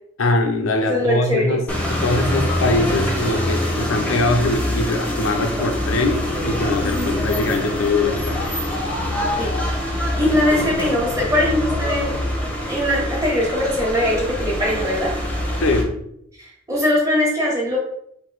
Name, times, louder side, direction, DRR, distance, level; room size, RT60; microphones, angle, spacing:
voice 1, 0.2-8.4 15.6-16.0, left 2 dB, 85° left, 4 dB, 0.6 m, -22 dB
voice 2, 0.9-1.6 6.8-7.2 9.4-9.8 10.2-12.1 12.7-15.1 16.4-17.8, left 1 dB, 15° right, -3 dB, 1.2 m, -21 dB
sound 1, 1.7-15.8, left 1 dB, 5° left, 0.8 m, -24 dB
4.6 x 2.7 x 4.0 m, 0.74 s
head